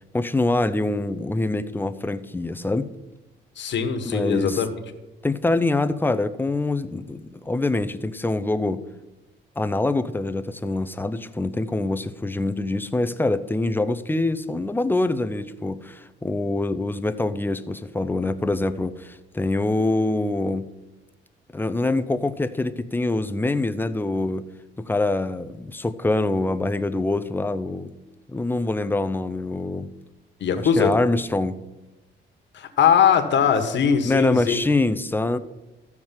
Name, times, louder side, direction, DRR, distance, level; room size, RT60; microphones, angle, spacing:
voice 1, 0.1-2.9 4.0-4.6 5.2-8.8 9.6-20.7 21.5-24.5 24.8-27.9 28.3-29.9 30.8-31.6 34.0-35.4, left 2 dB, 10° left, 12 dB, 0.6 m, -24 dB
voice 2, 3.6-4.7 30.4-30.9 32.5-34.6, left 7 dB, 65° left, 7 dB, 1.4 m, -20 dB
13.5 x 4.7 x 7.3 m, 1.0 s
cardioid pair, 90°, 20 cm